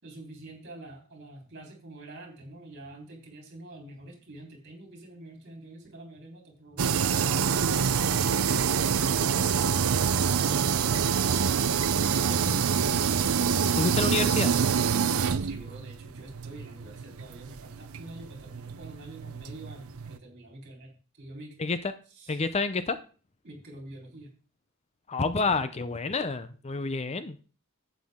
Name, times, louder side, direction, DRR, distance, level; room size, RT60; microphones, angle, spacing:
voice 1, 0.0-8.9 9.4-9.7 15.4-21.6 22.1-22.4 23.4-24.3, right 2 dB, 50° right, 1 dB, 3.7 m, -46 dB
sound 1, 6.8-20.2, right 6 dB, 75° right, 0.6 m, -26 dB
voice 2, 13.8-14.5 21.6-21.8 22.3-23.0 25.1-27.4, left 3 dB, 30° left, 12 dB, 0.6 m, -28 dB
11.5 x 8.2 x 3.6 m, 0.37 s
head